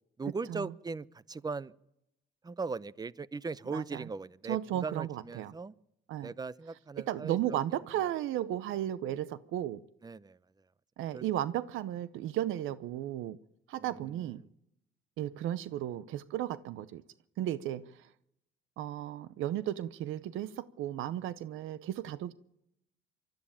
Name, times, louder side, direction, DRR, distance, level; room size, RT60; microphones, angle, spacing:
voice 1, 0.2-1.7 2.4-5.7 6.2-7.6 10.0-10.4 11.1-11.2 13.9-14.5, right 4 dB, 20° right, 19 dB, 0.7 m, -39 dB
voice 2, 3.7-4.1 4.5-5.5 6.1-6.3 7.1-9.8 11.0-13.4 13.7-14.4 15.2-17.0 17.4-18.1 18.8-22.3, right 12 dB, 90° right, 16 dB, 0.7 m, -34 dB
24.5 x 13.0 x 8.8 m, 0.82 s
cardioid pair, 90°, 20 cm